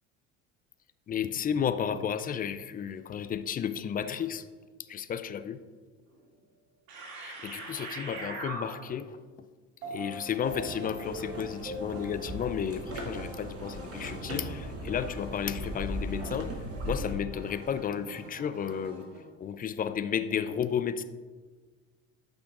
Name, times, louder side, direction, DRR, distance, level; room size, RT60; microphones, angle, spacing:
voice 1, 1.1-4.5 4.9-5.6 7.2-9.2 9.9-16.5 16.8-19.0 19.4-21.0, left 8 dB, 25° left, 11 dB, 0.4 m, -33 dB
sound 1, 6.1-6.2 6.9-9.1 9.8-19.2, right 2 dB, 65° right, 2.4 m, -43 dB
sound 2, 10.4-17.1, equal, 35° right, 1.7 m, -38 dB
12.5 x 5.8 x 2.4 m, 1.4 s
hypercardioid pair, 75°, 41 cm